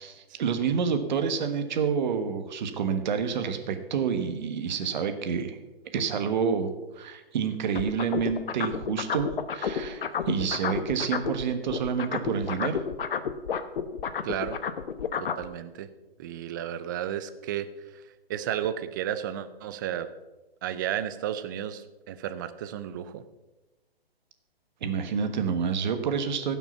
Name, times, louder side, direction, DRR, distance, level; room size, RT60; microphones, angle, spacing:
voice 1, 0.0-5.6 5.9-12.8 24.8-26.6, right 6 dB, 50° right, 8 dB, 1.4 m, -28 dB
sound 1, 7.8-11.4 11.7-15.5, left 7 dB, 60° left, 1.0 m, -30 dB
voice 2, 14.2-14.6 15.2-15.9 16.2-18.0 18.3-20.1 20.6-23.2, right 10 dB, 20° right, 12 dB, 0.4 m, -33 dB
16.0 x 6.0 x 5.8 m, 1.1 s
figure-of-eight pair, 135°, 31 cm